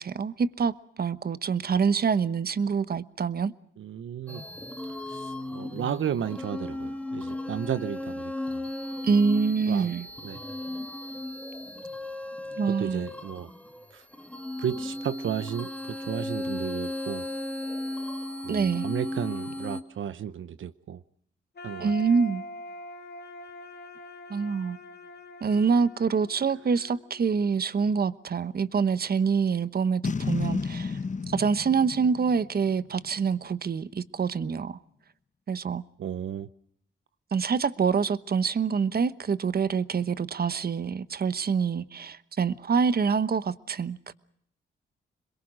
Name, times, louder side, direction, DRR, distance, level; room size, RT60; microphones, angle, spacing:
voice 1, 0.0-3.5 9.0-10.1 12.6-13.0 18.5-18.9 21.8-22.4 24.3-24.8 25.4-31.0 31.3-34.8 35.5-35.8 37.3-44.1, right 5 dB, 45° right, 1.1 m, -26 dB
voice 2, 3.8-4.4 5.1-8.7 9.7-9.9 10.2-10.4 12.6-13.5 13.9-14.1 14.6-17.2 18.4-21.0 21.6-21.9 36.0-36.5, right 9 dB, 70° right, 0.8 m, -33 dB
sound 1, 4.3-19.8, left 1 dB, 5° left, 1.8 m, -36 dB
sound 2, 21.5-27.5, left 1 dB, 50° left, 2.3 m, -44 dB
Boom, 30.0-33.4, left 5 dB, 35° left, 1.1 m, -32 dB
27.0 x 22.0 x 6.3 m
cardioid pair, 85°, 21 cm